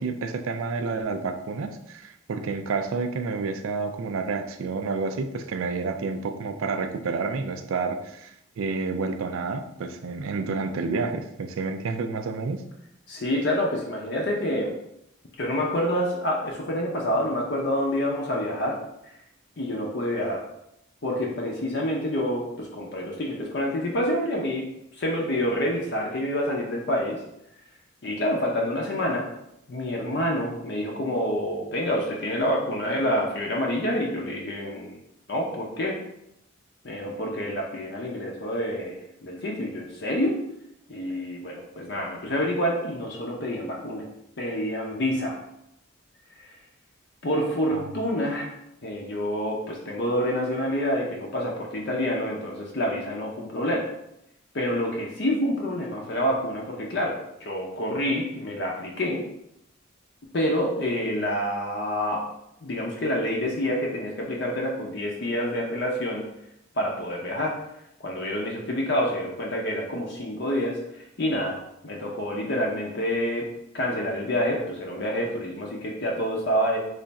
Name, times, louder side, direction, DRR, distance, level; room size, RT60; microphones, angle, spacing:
voice 1, 0.0-12.6 47.7-47.9, right 4 dB, 75° right, 7 dB, 0.4 m, -29 dB
voice 2, 13.1-14.8 15.4-18.8 19.6-20.4 21.0-24.7 24.9-27.2 28.0-29.3 29.7-35.0 35.3-36.0 36.8-40.4 40.9-44.1 44.4-45.4 46.5-46.6 47.2-48.5 48.8-53.9 54.5-57.2 57.4-59.2 60.3-62.2 62.6-66.2 66.7-67.6 68.0-70.8 71.2-73.5 73.7-76.8, equal, 55° left, -1 dB, 0.6 m, -27 dB
3.3 x 2.4 x 4.0 m, 0.80 s
head